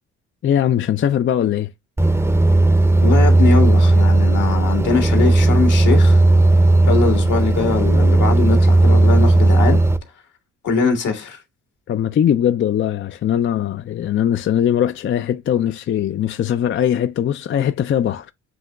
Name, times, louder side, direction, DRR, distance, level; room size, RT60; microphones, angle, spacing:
voice 1, 0.4-1.7 11.9-18.3, left 10 dB, 40° left, 0.4 m, -20 dB
sound 1, 2.0-10.0, right 2 dB, 10° right, 0.6 m, -14 dB
voice 2, 3.0-6.2 6.8-9.8 10.6-11.4, left 5 dB, 70° left, 1.7 m, -21 dB
7.8 x 2.9 x 2.3 m
cardioid pair, 70°, 32 cm